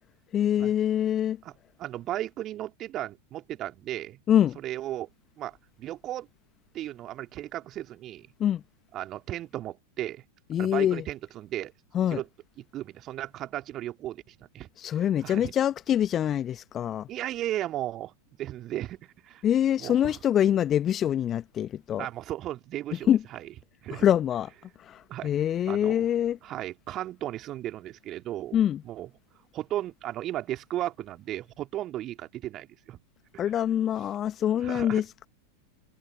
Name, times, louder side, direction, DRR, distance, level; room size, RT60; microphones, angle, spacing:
voice 1, 0.3-1.4 4.3-4.6 8.4-8.6 10.5-11.0 11.9-12.2 14.8-17.1 19.4-22.1 23.1-23.2 23.9-24.5 24.9-26.4 28.5-28.8 33.4-35.3, left 10 dB, 30° left, 1.3 m, -25 dB
voice 2, 1.8-4.2 4.6-5.1 5.4-6.3 6.7-8.3 8.9-10.2 10.6-11.7 12.1-12.2 12.7-14.7 15.2-15.5 17.1-18.1 18.4-19.4 19.8-20.2 22.0-23.4 23.8-24.0 25.1-25.3 25.7-26.1 26.4-28.6 28.8-29.1 29.5-33.0 34.6-35.0, right 13 dB, 35° right, 2.7 m, -35 dB
figure-of-eight pair, 90°, 0 cm